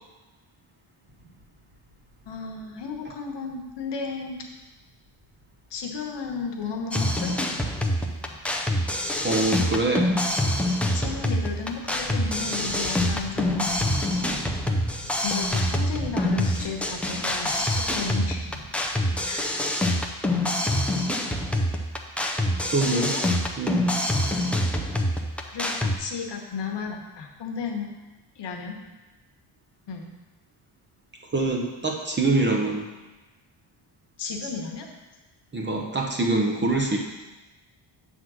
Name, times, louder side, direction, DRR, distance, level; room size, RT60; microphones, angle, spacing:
sound 1, 1.0-19.6, equal, 60° right, 1.9 m, -45 dB
voice 1, 2.3-4.4 5.7-7.3 10.8-13.7 15.2-18.4 19.3-19.5 22.8-23.3 25.5-27.9 28.4-28.8 29.9-30.1 34.2-34.9, left 5 dB, 60° left, 1 dB, 1.2 m, -33 dB
sound 2, 6.9-26.0, left 1 dB, 5° left, 0.3 m, -26 dB
voice 2, 9.2-10.1 20.4-20.5 22.6-23.2 23.6-23.9 31.3-32.9 35.5-37.0, right 2 dB, 25° right, 0 dB, 0.7 m, -25 dB
7.7 x 3.8 x 6.1 m, 1.1 s
wide cardioid pair, 160°, 48 cm